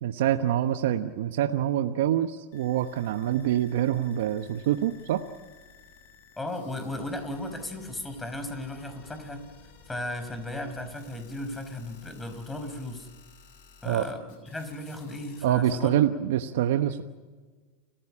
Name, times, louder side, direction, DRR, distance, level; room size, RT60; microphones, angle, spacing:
voice 1, 0.0-5.2 13.8-14.0 15.4-17.0, right 11 dB, 70° right, 8 dB, 1.1 m, -26 dB
sound 1, 2.5-15.5, left 5 dB, 65° left, 7.8 m, -54 dB
voice 2, 6.4-9.5 9.9-13.1 13.8-16.0, left 1 dB, 10° left, 8 dB, 5.0 m, -36 dB
30.0 x 15.0 x 10.0 m, 1.4 s
hypercardioid pair, 105°, 0 cm